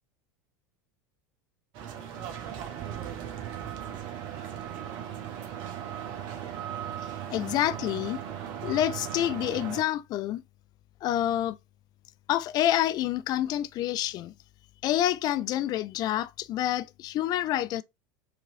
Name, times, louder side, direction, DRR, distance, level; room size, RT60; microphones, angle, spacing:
sound 1, 1.7-9.8, right 9 dB, 55° right, 1.0 m, -37 dB
voice 1, 7.3-8.2 8.6-10.4 11.0-11.6 12.3-14.3 14.8-17.8, left 13 dB, 40° left, 0.4 m, -27 dB
4.8 x 3.0 x 2.6 m
hypercardioid pair, 80°, 10 cm